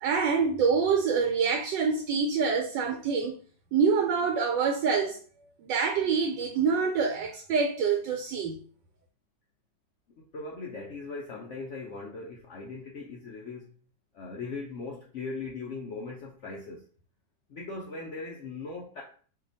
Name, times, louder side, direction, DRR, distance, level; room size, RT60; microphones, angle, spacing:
voice 1, 0.0-3.4 3.7-5.2 5.6-8.6, right 5 dB, 85° right, 1.3 m, -26 dB
voice 2, 10.2-13.7 14.1-16.8 17.5-19.0, left 3 dB, 85° left, 0.6 m, -39 dB
2.8 x 2.4 x 3.9 m
omnidirectional pair, 1.9 m